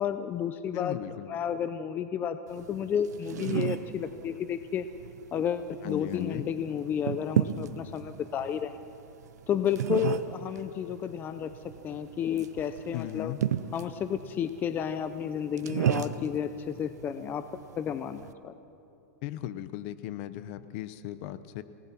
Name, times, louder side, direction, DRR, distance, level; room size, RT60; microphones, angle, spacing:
voice 1, 0.0-1.0 1.3-4.8 5.3-8.8 9.5-11.5 11.8-13.3 13.7-17.4 17.8-18.5, left 8 dB, 20° left, 11 dB, 0.6 m, -31 dB
voice 2, 0.7-1.3 5.8-6.5 12.9-13.4 19.2-21.6, left 13 dB, 45° left, 14 dB, 0.9 m, -37 dB
sound 1, 2.5-18.3, right 10 dB, 90° right, 0.8 m, -35 dB
28.5 x 18.5 x 6.0 m, 2.8 s
supercardioid pair, 150°, 9 cm